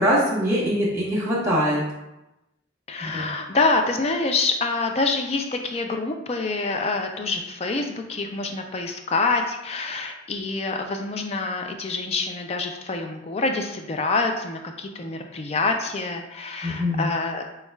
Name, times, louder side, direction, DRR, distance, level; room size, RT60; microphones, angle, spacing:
voice 1, 0.0-1.8 3.0-3.3 16.6-17.1, equal, 15° right, -7 dB, 1.1 m, -23 dB
voice 2, 2.9-17.4, left 3 dB, 30° left, 4 dB, 0.4 m, -26 dB
7.0 x 2.3 x 2.2 m, 0.94 s
head